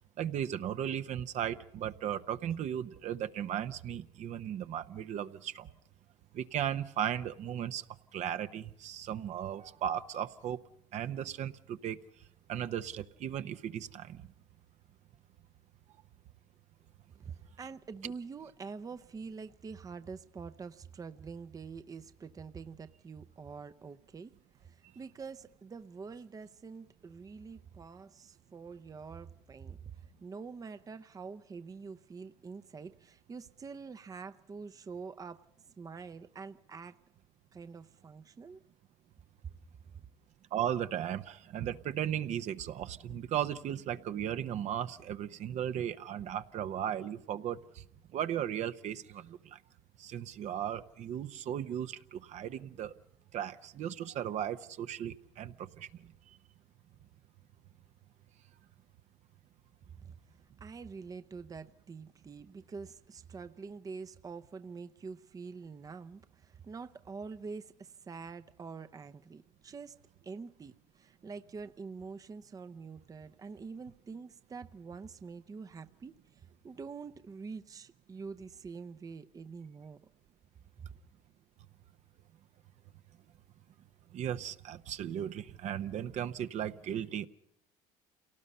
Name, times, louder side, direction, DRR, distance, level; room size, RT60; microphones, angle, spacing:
voice 1, 0.2-5.7 6.3-7.8 8.1-10.6 10.9-12.0 12.5-14.2 40.5-47.6 48.1-49.6 50.0-52.9 53.3-55.9 84.1-87.3, right 10 dB, 55° right, 0.9 m, -36 dB
voice 2, 17.2-24.3 24.6-35.5 35.8-37.0 37.5-38.6 39.4-39.5 60.0-60.2 60.6-70.0 70.2-80.0 80.8-80.9, right 5 dB, 25° right, 0.7 m, -46 dB
28.0 x 18.5 x 5.5 m
supercardioid pair, 85°, 14 cm